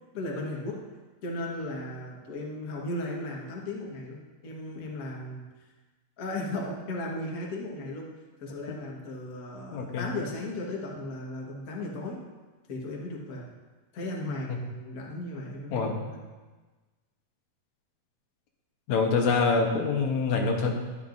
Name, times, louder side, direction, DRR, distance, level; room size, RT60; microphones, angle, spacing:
voice 1, 0.1-0.9 1.2-5.5 6.2-8.1 8.4-12.2 12.7-13.5 13.9-16.2, left 2 dB, 40° left, -2 dB, 1.3 m, -36 dB
voice 2, 9.7-10.1 14.5-14.6 15.7-16.0 18.9-20.7, left 4 dB, 80° left, 1 dB, 2.5 m, -25 dB
12.0 x 11.0 x 2.6 m, 1.3 s
omnidirectional pair, 3.3 m